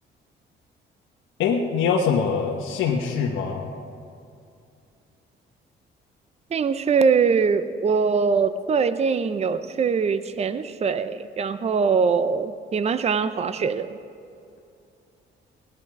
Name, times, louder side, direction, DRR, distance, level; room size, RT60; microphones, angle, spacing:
voice 1, 1.4-3.7, left 6 dB, 80° left, -1 dB, 1.2 m, -23 dB
voice 2, 6.5-14.0, right 5 dB, 35° right, 12 dB, 0.6 m, -22 dB
17.5 x 10.5 x 4.8 m, 2.5 s
cardioid pair, 90°, 20 cm